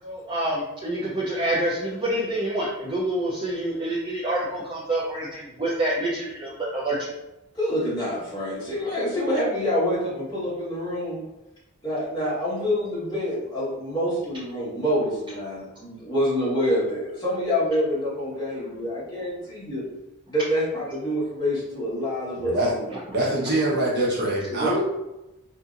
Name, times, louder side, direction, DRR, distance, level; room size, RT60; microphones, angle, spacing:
voice 1, 0.0-7.1, right 1 dB, 20° right, -7 dB, 0.5 m, -27 dB
voice 2, 7.5-11.2 11.8-19.8 20.3-22.9 24.5-24.8, equal, 20° left, -10 dB, 1.3 m, -26 dB
voice 3, 22.3-22.7 23.1-24.8, right 1 dB, 50° right, -5 dB, 0.9 m, -24 dB
2.8 x 2.6 x 2.4 m, 0.95 s
head